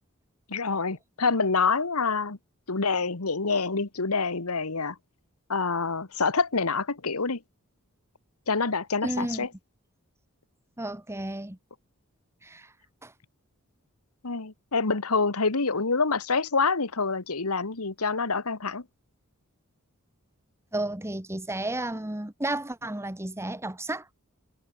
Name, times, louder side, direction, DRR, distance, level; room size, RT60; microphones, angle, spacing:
voice 1, 0.5-2.4 2.7-5.0 5.5-7.4 8.5-9.5 14.2-18.8, left 4 dB, 80° left, 1.6 m, -26 dB
voice 2, 9.0-9.5 10.8-11.6 12.4-12.7 13.0-13.1 20.7-24.1, right 1 dB, 10° right, 1.5 m, -32 dB
head